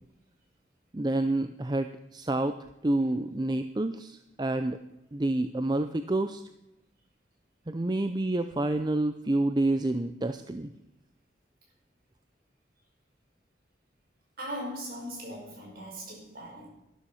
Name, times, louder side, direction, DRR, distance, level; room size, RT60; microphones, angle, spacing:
voice 1, 0.9-2.6 2.8-4.8 5.1-6.4 7.7-10.7, right 2 dB, 25° right, 9 dB, 0.5 m, -28 dB
voice 2, 14.4-16.7, equal, 50° right, -1 dB, 5.4 m, -39 dB
13.0 x 12.5 x 5.7 m, 0.90 s
head